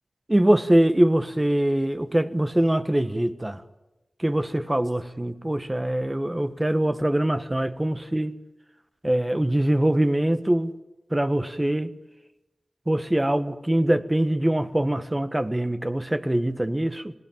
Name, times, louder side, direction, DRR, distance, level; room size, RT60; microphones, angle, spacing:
voice 1, 0.3-3.6 4.2-8.3 9.0-10.7 11.1-11.9 12.9-17.1, right 1 dB, 20° right, 1.4 m, -23 dB
27.0 x 18.0 x 9.0 m
cardioid pair, 40°, 0 cm